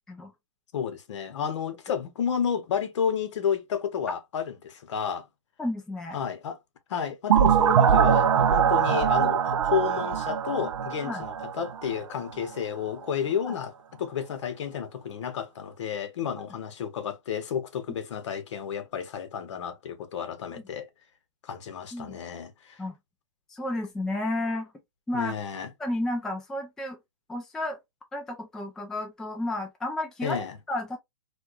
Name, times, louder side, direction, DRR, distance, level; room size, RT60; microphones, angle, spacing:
voice 1, 0.7-5.2 6.1-6.6 6.9-13.7 14.0-20.9 21.4-22.8 25.1-25.7 30.2-30.6, left 7 dB, 60° left, 1.0 m, -31 dB
voice 2, 5.6-6.2 11.0-11.2 13.4-13.6 20.5-20.6 21.9-22.2 22.8-22.9 23.5-24.7 25.1-25.3 25.8-27.0 27.3-27.8 28.1-31.0, left 1 dB, 5° left, 0.3 m, -32 dB
sound 1, 7.3-12.0, right 8 dB, 85° right, 0.6 m, -22 dB
4.4 x 2.3 x 2.4 m
hypercardioid pair, 155°, 17 cm